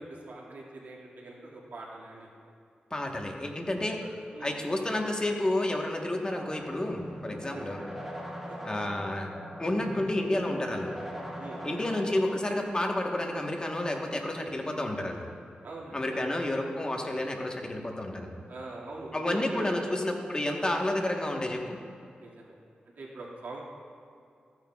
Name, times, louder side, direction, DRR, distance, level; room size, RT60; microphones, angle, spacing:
voice 1, 0.0-2.3 3.8-3.9 4.3-4.5 7.5-7.6 8.5-8.6 11.3-11.6 15.6-16.2 18.5-19.8 22.2-22.5 23.0-23.6, right 2 dB, 75° right, -4 dB, 2.1 m, -42 dB
voice 2, 2.9-4.0 4.4-7.8 8.6-9.3 9.6-10.9 11.6-15.3 15.9-18.4 19.1-21.8, left 1 dB, 25° left, 1 dB, 1.2 m, -30 dB
sound 1, 6.3-12.3, equal, 5° right, 1.9 m, -41 dB
14.5 x 9.0 x 2.4 m, 2.6 s
cardioid pair, 70°, 3 cm